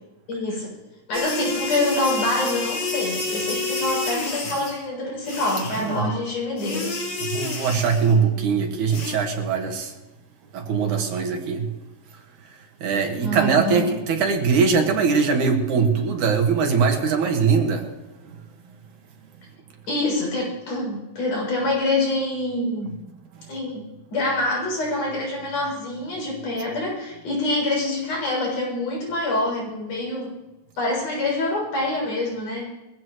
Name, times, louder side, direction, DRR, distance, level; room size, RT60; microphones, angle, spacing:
voice 1, 0.3-0.7 1.1-7.0 13.2-13.8 19.9-22.9 23.5-30.3 30.8-32.7, left 2 dB, 85° left, -3 dB, 8.4 m, -26 dB
sound 1, 1.1-4.8 5.3-6.0 6.6-8.2 8.9-9.1, left 3 dB, 55° left, 4.2 m, -29 dB
voice 2, 5.7-6.0 7.2-9.9 10.5-11.7 12.8-17.9, right 5 dB, 75° right, 3 dB, 3.2 m, -21 dB
22.0 x 15.5 x 3.1 m, 1.0 s
omnidirectional pair, 3.6 m